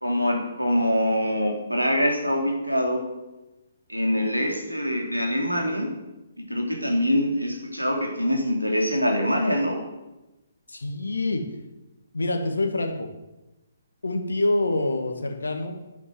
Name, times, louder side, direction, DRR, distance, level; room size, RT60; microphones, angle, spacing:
voice 1, 0.0-3.1 3.9-5.9 6.4-9.8, equal, 90° right, 2 dB, 3.2 m, -24 dB
voice 2, 10.7-11.4 12.1-13.1 14.0-15.9, left 2 dB, 70° left, 5 dB, 2.1 m, -26 dB
11.0 x 9.2 x 7.9 m, 1.0 s
figure-of-eight pair, 130°, 0 cm